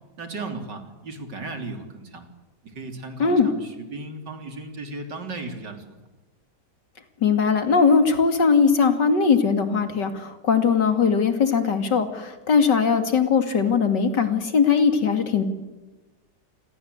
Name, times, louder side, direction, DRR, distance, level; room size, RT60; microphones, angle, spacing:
voice 1, 0.2-2.3 2.6-5.8, right 3 dB, 85° right, 6 dB, 3.9 m, -36 dB
voice 2, 7.2-15.4, left 5 dB, 85° left, 8 dB, 3.1 m, -20 dB
28.5 x 22.5 x 8.2 m, 1.1 s
omnidirectional pair, 1.8 m